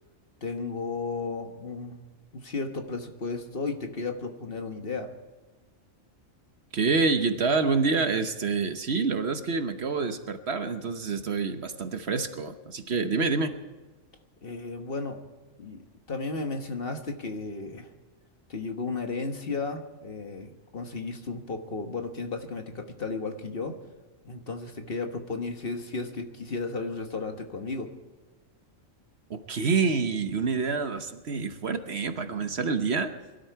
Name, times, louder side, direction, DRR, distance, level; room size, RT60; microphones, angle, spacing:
voice 1, 0.4-2.0 2.3-5.1 14.4-15.2 15.6-15.8 16.1-17.9 18.5-23.8 24.2-27.9, left 3 dB, 45° left, 5 dB, 1.5 m, -34 dB
voice 2, 6.7-13.5 29.3-33.1, right 4 dB, 55° right, 8 dB, 1.2 m, -27 dB
22.5 x 12.5 x 4.7 m, 1.3 s
omnidirectional pair, 1.4 m